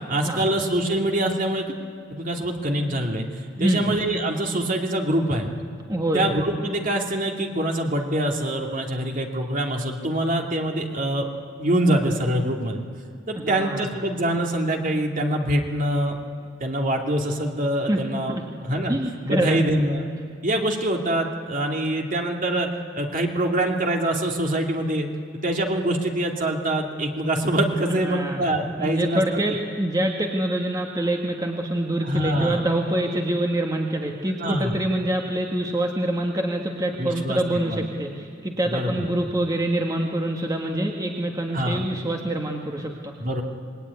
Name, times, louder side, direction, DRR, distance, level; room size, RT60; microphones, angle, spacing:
voice 1, 0.0-1.7 2.1-3.3 3.6-5.5 6.1-11.3 11.6-12.8 13.3-16.2 16.6-18.4 18.6-19.0 19.2-20.1 20.4-22.7 22.9-25.1 25.4-29.4 32.0-32.6 34.4-34.8 37.0-37.9 38.6-39.1 41.5-41.9 43.2-43.4, right 1 dB, 45° right, 2 dB, 2.6 m, -24 dB
voice 2, 3.6-3.9 5.9-6.3 13.4-13.9 17.9-18.0 18.3-18.4 18.9-19.6 28.0-28.4 28.8-43.1, right 1 dB, 20° right, 1 dB, 1.7 m, -25 dB
26.0 x 21.0 x 9.7 m, 2.1 s
head